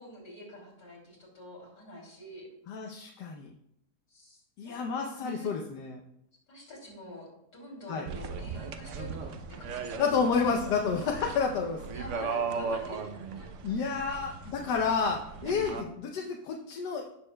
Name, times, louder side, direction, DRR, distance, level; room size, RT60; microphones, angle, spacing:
voice 1, 0.0-2.5 4.1-4.8 5.0-5.5 6.5-10.6 11.9-13.5 13.8-13.9 15.3-15.8, equal, 60° left, -2 dB, 3.2 m, -46 dB
voice 2, 2.7-3.5 4.6-6.0 7.9-8.1 10.0-11.8 13.6-17.1, left 5 dB, 85° left, 2 dB, 1.4 m, -30 dB
sound 1, 8.1-15.8, right 5 dB, 60° right, 0.8 m, -37 dB
16.5 x 6.5 x 2.2 m, 0.79 s
omnidirectional pair, 1.8 m